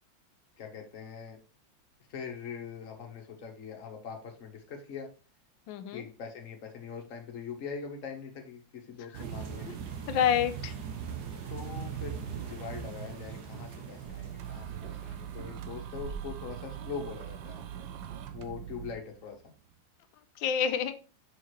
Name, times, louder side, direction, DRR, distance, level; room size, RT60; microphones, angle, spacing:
voice 1, 0.6-1.4 2.1-5.1 5.9-9.7 11.5-17.6 18.3-19.4, left 6 dB, 45° left, 2 dB, 1.4 m, -42 dB
voice 2, 5.7-6.0 9.1-9.2 9.7-9.8 10.1-10.7 20.4-20.9, left 9 dB, 85° left, 9 dB, 1.4 m, -28 dB
sound 1, 9.1-18.2 18.7-18.9 19.2-19.3, right 8 dB, 60° right, 1.4 m, -41 dB
sound 2, 14.1-18.9, right 9 dB, 80° right, 1.4 m, -41 dB
6.4 x 5.5 x 3.1 m, 0.35 s
omnidirectional pair, 2.1 m